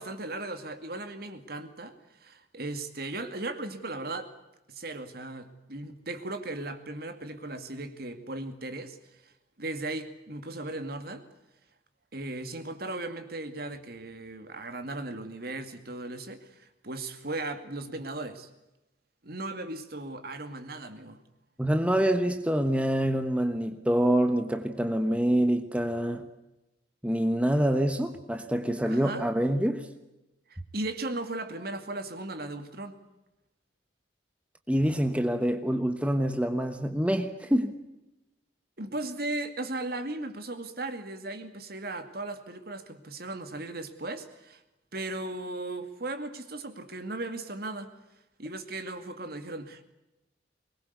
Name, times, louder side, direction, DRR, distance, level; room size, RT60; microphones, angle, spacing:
voice 1, 0.0-4.3 4.7-9.3 9.6-11.2 12.1-18.5 19.2-21.2 28.9-29.2 30.5-33.0 38.8-44.6 44.9-47.9 48.4-49.8, right 2 dB, 55° right, 9 dB, 2.4 m, -37 dB
voice 2, 21.6-26.2 27.0-29.9 34.7-37.8, equal, 5° right, 7 dB, 1.2 m, -26 dB
23.0 x 20.5 x 8.3 m, 0.96 s
head